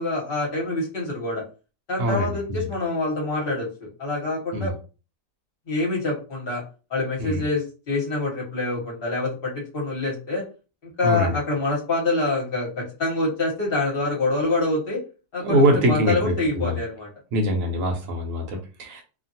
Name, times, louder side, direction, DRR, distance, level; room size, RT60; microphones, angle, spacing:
voice 1, 0.0-1.4 1.9-4.7 5.7-6.6 6.9-10.4 10.8-15.0 15.3-17.1, left 2 dB, 40° left, -3 dB, 1.2 m, -26 dB
voice 2, 2.0-2.7 4.5-4.7 7.2-7.5 11.0-11.4 15.4-16.8 17.3-19.0, equal, 60° right, 2 dB, 1.0 m, -23 dB
2.8 x 2.5 x 2.7 m, 0.34 s
omnidirectional pair, 1.8 m